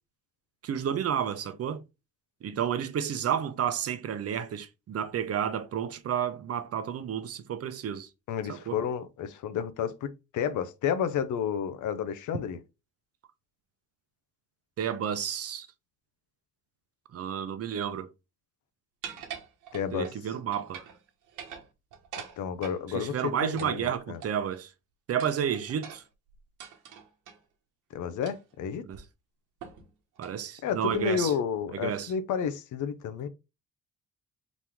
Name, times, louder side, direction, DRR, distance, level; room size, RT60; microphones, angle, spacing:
voice 1, 0.6-1.8 2.4-8.1 8.5-8.8 14.8-15.7 17.1-18.1 19.9-20.9 22.9-24.7 25.1-26.0 28.8-29.0 30.2-31.3 31.7-32.1, right 8 dB, 50° right, 0.7 m, -31 dB
voice 2, 8.3-10.1 10.3-12.6 19.7-20.1 22.4-24.2 27.9-28.8 30.6-33.3, left 8 dB, 75° left, 0.7 m, -31 dB
sound 1, 19.0-20.2 20.5-21.0 21.3-22.8 23.6-24.6 25.2-27.4 28.2-28.5 28.9-29.0 29.6-29.9 30.2-30.4 30.9-31.2, right 8 dB, 85° right, 1.1 m, -44 dB
4.1 x 3.0 x 3.4 m
cardioid pair, 90°, 30 cm